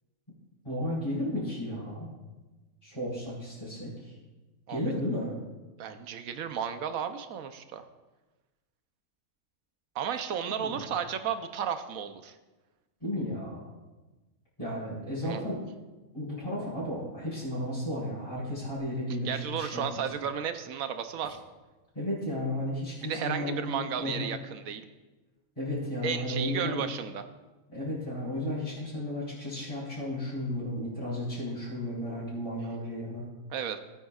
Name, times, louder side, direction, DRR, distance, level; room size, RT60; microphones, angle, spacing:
voice 1, 0.6-2.1 2.8-4.1 4.7-5.4 10.6-10.8 13.0-13.7 14.6-15.7 16.1-19.8 21.9-24.3 25.6-26.8 27.7-33.2, left 1 dB, 20° left, -11 dB, 4.3 m, -33 dB
voice 2, 5.8-7.8 9.9-12.4 15.2-15.5 19.2-21.4 23.0-24.9 26.0-27.2 33.5-33.8, right 8 dB, 80° right, 9 dB, 1.1 m, -33 dB
18.5 x 9.2 x 2.4 m, 1.2 s
omnidirectional pair, 1.5 m